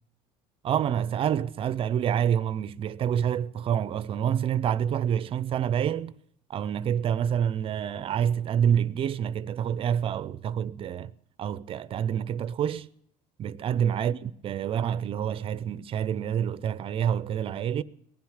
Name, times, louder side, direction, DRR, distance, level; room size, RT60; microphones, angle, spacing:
voice 1, 0.6-6.1 6.5-11.1 11.4-12.9 13.4-17.8, right 9 dB, 40° right, 0.5 m, -27 dB
19.0 x 12.0 x 6.4 m
cardioid pair, 130°, 14 cm